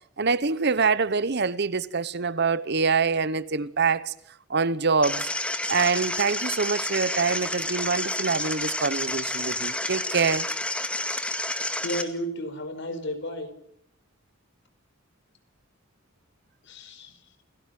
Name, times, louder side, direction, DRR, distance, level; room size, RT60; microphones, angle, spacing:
voice 1, 0.2-4.1 4.5-5.3 5.7-10.5, right 5 dB, 55° right, 1.0 m, -25 dB
sound 1, 5.0-12.0, left 1 dB, 5° left, 2.0 m, -30 dB
voice 2, 11.8-13.5 16.6-17.2, equal, 60° left, 4.7 m, -33 dB
28.5 x 17.5 x 9.3 m
head